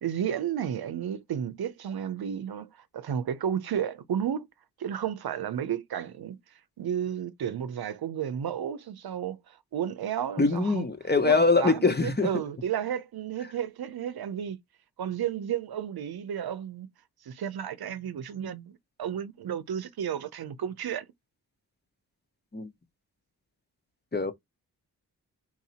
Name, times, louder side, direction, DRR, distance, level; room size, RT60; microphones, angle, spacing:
voice 1, 0.0-4.5 4.8-6.4 6.8-10.9 11.2-14.6 15.0-16.9 17.2-21.1, right 9 dB, 70° right, 0.8 m, -32 dB
voice 2, 10.4-12.3 22.5-22.7 24.1-24.3, left 3 dB, 25° left, 1.2 m, -23 dB
4.5 x 2.8 x 4.2 m
cardioid pair, 60°, 38 cm